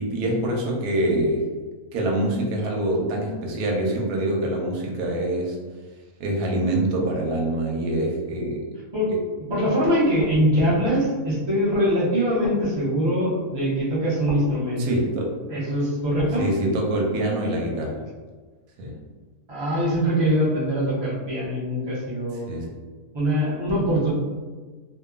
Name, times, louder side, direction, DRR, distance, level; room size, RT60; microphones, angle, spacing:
voice 1, 0.0-1.4 1.9-5.6 6.2-8.6 14.8-15.3 16.4-18.0 18.8-18.9 22.5-22.7, right 1 dB, 90° right, 0 dB, 1.1 m, -25 dB
voice 2, 9.5-14.8 15.5-16.5 19.5-22.5 23.1-24.1, equal, 25° right, -8 dB, 0.6 m, -23 dB
2.9 x 2.2 x 2.3 m, 1.4 s
omnidirectional pair, 1.6 m